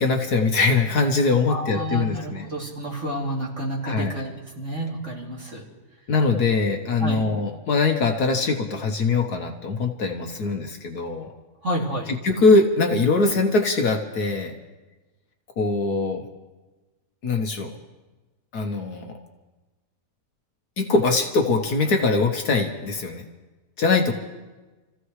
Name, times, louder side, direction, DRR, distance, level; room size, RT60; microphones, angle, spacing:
voice 1, 0.0-2.4 3.8-4.1 6.1-11.3 12.2-14.5 15.6-16.2 17.2-17.7 18.5-19.1 20.8-23.2 23.8-24.1, left 3 dB, 70° left, 3 dB, 1.7 m, -22 dB
voice 2, 1.5-5.6 7.0-7.2 11.6-12.1, right 1 dB, 45° right, -3 dB, 3.3 m, -30 dB
29.0 x 15.0 x 3.2 m, 1.2 s
omnidirectional pair, 1.8 m